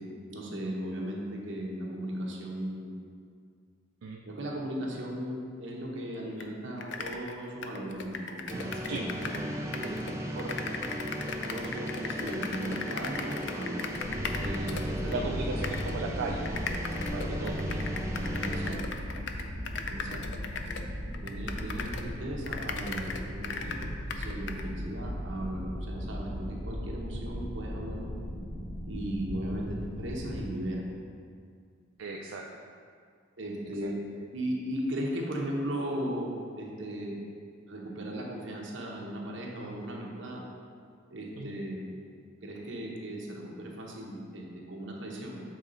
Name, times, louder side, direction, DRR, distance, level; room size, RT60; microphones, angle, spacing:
voice 1, 0.3-2.9 4.2-10.2 11.4-14.0 14.4-15.6 18.4-18.8 19.9-20.2 21.2-28.1 28.8-30.8 33.4-34.0 34.3-36.3 36.6-37.2 37.6-40.4 41.1-41.9 42.4-45.4, right 1 dB, 70° right, -2 dB, 1.0 m, -37 dB
sound 1, 6.4-6.5 6.8-9.5 9.7-15.2 15.6-16.0 16.4-22.1 22.4-24.7, left 5 dB, 60° left, 0.4 m, -38 dB
sound 2, 8.5-18.7, equal, 15° right, 0.4 m, -36 dB
voice 2, 10.3-10.8 15.1-16.5 17.1-17.9 20.0-20.2 32.0-32.5 33.8-33.9 39.6-39.8 41.4-41.6, right 3 dB, 85° right, 0 dB, 0.4 m, -37 dB
sound 3, 14.0-30.4, equal, 90° left, 1.4 m, -38 dB
7.2 x 4.0 x 3.9 m, 2.1 s
head